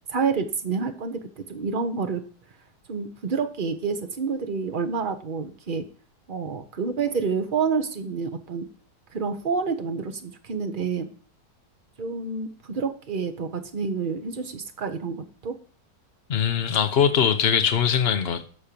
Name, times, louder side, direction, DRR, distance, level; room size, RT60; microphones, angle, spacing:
voice 1, 0.1-2.2 2.9-5.8 6.3-8.7 9.1-11.1 12.0-15.5, right 5 dB, 35° right, 0.9 m, -28 dB
voice 2, 16.3-18.5, left 8 dB, 40° left, 1.0 m, -22 dB
13.0 x 4.4 x 6.9 m
omnidirectional pair, 2.0 m